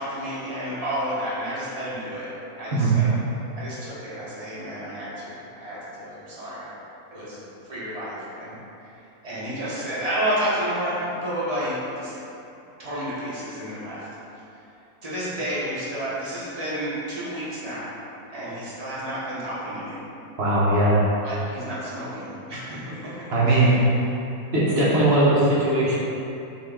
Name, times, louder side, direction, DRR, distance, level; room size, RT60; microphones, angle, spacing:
voice 1, 0.0-2.3 2.6-3.1 3.5-6.7 7.1-7.4 7.7-8.5 9.2-12.1 12.8-14.1 15.0-17.9 18.3-20.0 21.2-23.8, equal, 30° right, -9 dB, 1.1 m, -31 dB
voice 2, 20.4-21.0 23.3-23.9 24.5-26.0, right 1 dB, 50° right, -8 dB, 1.1 m, -19 dB
5.7 x 2.5 x 3.5 m, 2.8 s
omnidirectional pair, 1.6 m